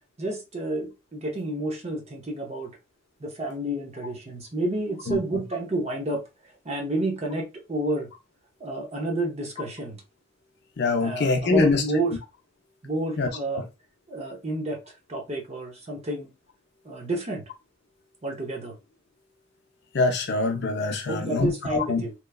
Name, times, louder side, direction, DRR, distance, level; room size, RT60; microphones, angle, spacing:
voice 1, 0.2-2.7 3.2-6.2 6.6-8.1 8.6-10.0 11.0-12.2 12.8-13.7 14.1-14.8 15.1-16.3 16.8-17.4 18.2-18.8 21.1-22.1, right 2 dB, 30° right, 0.6 m, -30 dB
voice 2, 10.8-11.8 13.2-13.3 19.9-22.0, left 3 dB, 50° left, 0.5 m, -24 dB
2.9 x 2.2 x 2.2 m
head